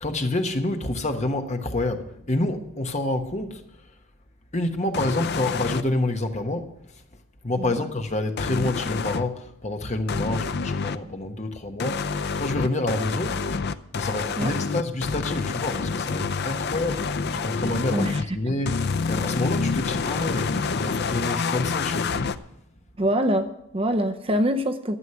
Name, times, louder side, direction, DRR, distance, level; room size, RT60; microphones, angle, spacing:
voice 1, 0.0-3.6 4.5-6.7 7.4-13.5 13.9-22.2, left 2 dB, 30° left, 1.1 m, -28 dB
sound 1, 4.9-5.8 8.4-9.3 10.1-11.0 11.8-18.3 18.7-22.4, left 4 dB, 50° left, 0.5 m, -27 dB
voice 2, 17.9-18.2 23.0-25.0, equal, 25° right, 0.7 m, -24 dB
13.0 x 7.3 x 9.4 m
head